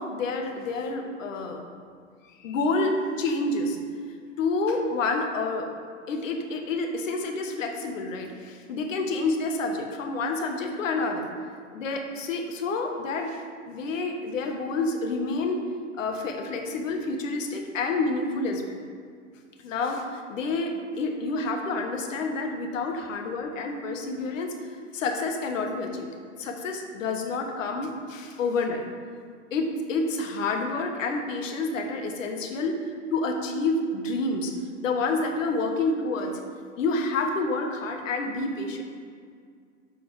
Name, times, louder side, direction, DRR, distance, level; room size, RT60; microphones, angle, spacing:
voice 1, 0.0-1.6 2.4-3.8 4.4-5.7 6.1-11.3 11.7-13.4 13.7-15.6 16.0-18.8 19.6-26.1 26.4-28.9 29.5-34.5 34.8-36.4 36.8-38.8, left 3 dB, 80° left, 3 dB, 1.2 m, -28 dB
7.2 x 4.5 x 4.8 m, 2.1 s
hypercardioid pair, 140°, 38 cm